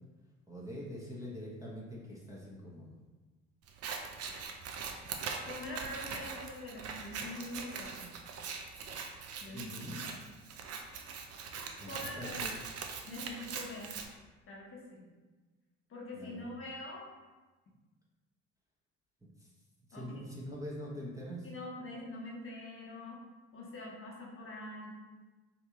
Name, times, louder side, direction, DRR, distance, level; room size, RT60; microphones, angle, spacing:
voice 1, 0.5-3.0 9.5-10.0 11.8-12.5 16.1-16.5 19.4-19.5 19.9-21.5, equal, 10° right, -5 dB, 0.9 m, -44 dB
Scissors, 3.7-14.1, right 5 dB, 40° right, 0.5 m, -42 dB
voice 2, 5.5-8.1 9.4-10.1 11.9-12.5 13.1-14.0 14.5-15.1 15.9-17.1 19.9-20.1 21.4-23.2 23.5-25.0, left 2 dB, 35° left, -3 dB, 1.0 m, -44 dB
2.9 x 2.7 x 3.7 m, 1.2 s
hypercardioid pair, 65°, 38 cm